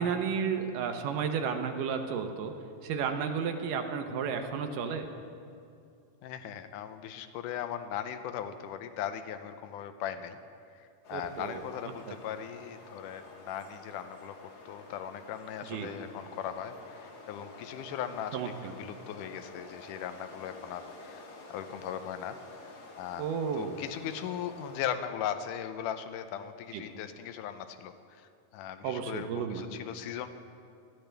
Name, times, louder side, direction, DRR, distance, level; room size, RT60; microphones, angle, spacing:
voice 1, 0.0-2.5 2.8-5.1 11.1-11.6 12.1-12.2 15.7-15.9 18.3-18.7 23.2-23.8 26.7-26.8 28.8-29.6, right 6 dB, 75° right, 6 dB, 2.4 m, -32 dB
voice 2, 6.2-10.4 10.8-14.4 14.7-22.4 22.6-30.3, left 9 dB, 80° left, 9 dB, 2.0 m, -39 dB
sound 1, 11.0-24.9, left 2 dB, 50° left, 1.5 m, -50 dB
19.0 x 13.5 x 3.4 m, 2.5 s
omnidirectional pair, 3.9 m